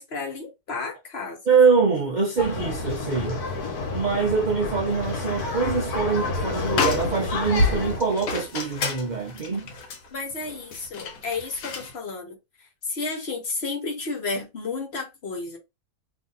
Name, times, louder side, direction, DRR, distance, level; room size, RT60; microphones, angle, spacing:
voice 1, 0.0-1.4 10.1-12.4 12.8-15.6, left 3 dB, 50° left, 1.1 m, -32 dB
voice 2, 1.5-3.4 3.9-9.7, right 5 dB, 60° right, 0.4 m, -24 dB
sound 1, 2.4-8.0, left 3 dB, 85° left, 1.4 m, -30 dB
sound 2, 5.4-5.9 6.2-6.3 6.7-11.9, left 3 dB, 70° left, 1.2 m, -29 dB
2.7 x 2.6 x 3.8 m
omnidirectional pair, 1.6 m